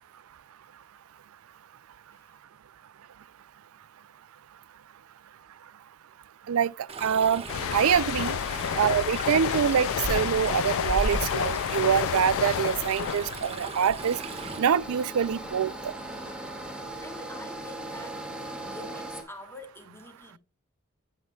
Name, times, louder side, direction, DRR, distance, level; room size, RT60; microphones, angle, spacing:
voice 1, 2.1-2.4 6.6-6.7 8.5-8.9 17.0-20.4, left 2 dB, 10° left, 2.6 m, -47 dB
Stream, 6.9-14.6, right 2 dB, 30° right, 1.6 m, -36 dB
voice 2, 7.0-7.4 7.7-8.4 8.8-14.2 14.6-15.9, right 8 dB, 75° right, 0.4 m, -25 dB
sound 1, 7.5-14.9 15.2-15.6, left 9 dB, 70° left, 0.3 m, -31 dB
sound 2, 14.0-19.2, right 1 dB, 5° right, 2.1 m, -38 dB
16.5 x 5.6 x 2.3 m
head